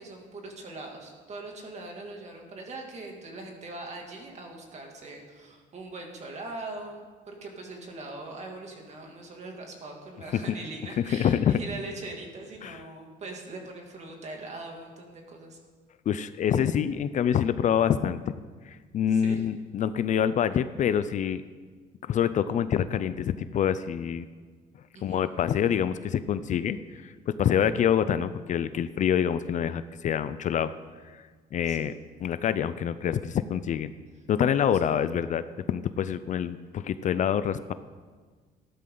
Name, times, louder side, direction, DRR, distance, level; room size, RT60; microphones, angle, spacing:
voice 1, 0.0-15.6 16.5-16.7 19.1-19.4 24.9-25.3 31.6-31.8, right 2 dB, 40° right, 1 dB, 2.5 m, -41 dB
voice 2, 11.0-11.6 12.6-12.8 16.1-18.3 18.7-21.4 22.1-24.3 25.0-26.8 27.0-30.7 31.5-31.9 32.2-33.9 34.3-37.7, left 9 dB, 45° left, 13 dB, 0.5 m, -26 dB
14.5 x 12.0 x 3.9 m, 1.5 s
cardioid pair, 110°, 17 cm